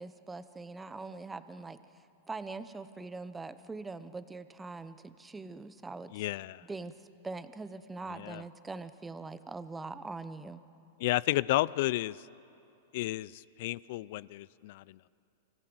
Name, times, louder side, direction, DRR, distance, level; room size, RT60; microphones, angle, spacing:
voice 1, 0.0-1.8 2.3-6.2 6.6-6.9 7.2-10.6, right 3 dB, 10° right, 13 dB, 0.8 m, -42 dB
voice 2, 6.1-6.6 8.1-8.4 11.0-12.2 12.9-15.0, left 17 dB, 60° left, 22 dB, 0.4 m, -32 dB
25.5 x 15.5 x 7.9 m, 2.7 s
hypercardioid pair, 130°, 0 cm